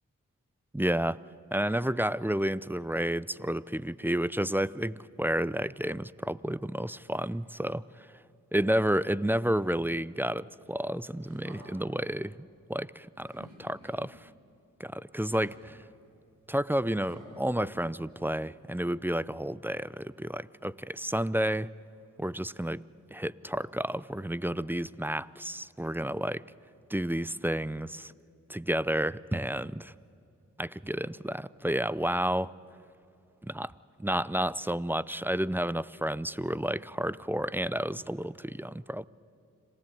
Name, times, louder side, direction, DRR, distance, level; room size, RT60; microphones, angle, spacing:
voice 1, 0.7-1.2 1.5-8.1 8.5-14.3 14.8-15.8 16.5-21.7 22.2-22.8 23.1-26.4 26.9-28.1 28.5-29.9 30.6-32.5 33.4-33.7 34.0-39.0, right 1 dB, 5° right, 20 dB, 0.5 m, -31 dB
sound 1, 11.2-12.0 13.2-14.1 15.2-15.9 17.0-18.1 19.2-19.3, right 1 dB, 85° right, 5.1 m, -53 dB
26.5 x 15.5 x 9.2 m, 2.5 s
supercardioid pair, 40°, 32 cm